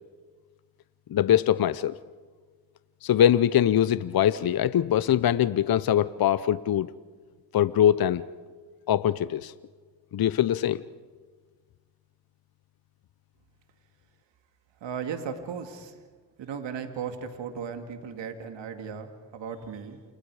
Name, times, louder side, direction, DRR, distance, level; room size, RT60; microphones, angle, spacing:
voice 1, 1.1-1.9 3.0-6.9 7.5-8.2 8.9-9.5 10.1-10.8, left 10 dB, 55° left, 16 dB, 0.8 m, -22 dB
voice 2, 14.8-16.1 16.4-20.0, right 6 dB, 80° right, 6 dB, 2.4 m, -36 dB
28.5 x 27.0 x 4.9 m, 1.5 s
supercardioid pair, 60°, 44 cm